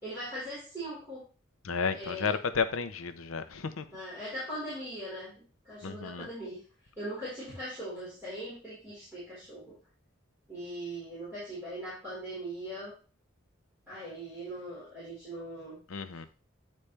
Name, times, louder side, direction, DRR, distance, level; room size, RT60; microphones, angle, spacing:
voice 1, 0.0-1.2 1.9-2.4 3.9-6.6 7.0-9.7 10.5-12.9 13.9-15.8, right 1 dB, 10° right, 4.3 m, -40 dB
voice 2, 1.6-3.8 5.8-6.3 15.9-16.3, left 5 dB, 90° left, 0.7 m, -32 dB
9.8 x 4.3 x 3.3 m
head